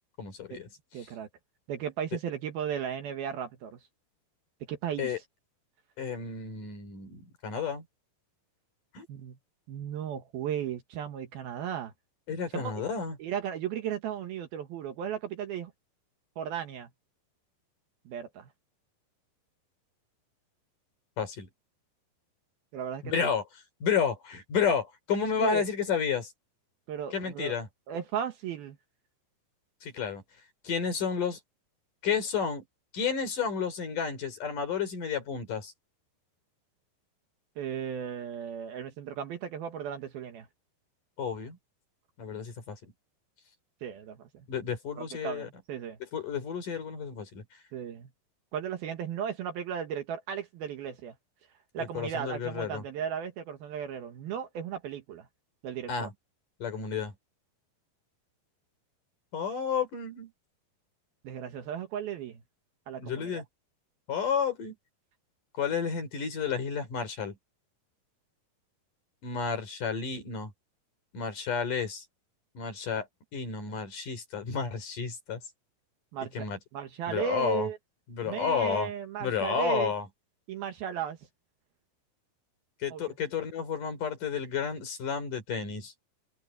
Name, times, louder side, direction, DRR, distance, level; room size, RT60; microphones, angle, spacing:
voice 1, 0.2-0.7 1.0-1.1 5.0-5.2 6.0-7.9 8.9-9.1 12.3-13.2 21.2-21.5 23.0-26.3 27.1-27.7 29.8-30.2 30.6-31.4 32.0-32.6 32.9-35.7 41.2-41.6 42.2-42.9 44.5-45.5 46.0-47.4 51.8-52.8 55.9-56.1 56.6-57.1 59.3-60.3 63.0-63.4 64.1-64.7 65.6-67.4 69.2-70.5 71.1-72.0 72.6-73.1 73.3-75.4 76.3-76.6 77.1-77.7 78.1-78.9 79.2-80.1 82.8-85.9, left 6 dB, 50° left, 5.2 m, -31 dB
voice 2, 0.9-1.3 1.7-3.8 4.7-5.1 9.1-9.4 9.7-11.9 12.5-12.8 13.2-15.7 16.4-16.9 18.1-18.5 22.7-23.3 25.4-25.6 26.9-27.5 27.9-28.8 37.6-40.5 43.8-44.5 45.0-46.0 47.7-48.1 48.5-51.1 51.7-55.3 55.6-56.1 61.2-62.4 62.9-63.4 76.1-76.4 76.7-77.8 78.2-79.9 80.5-81.2 82.9-83.0, right 8 dB, 65° right, 3.0 m, -35 dB
omnidirectional pair, 5.1 m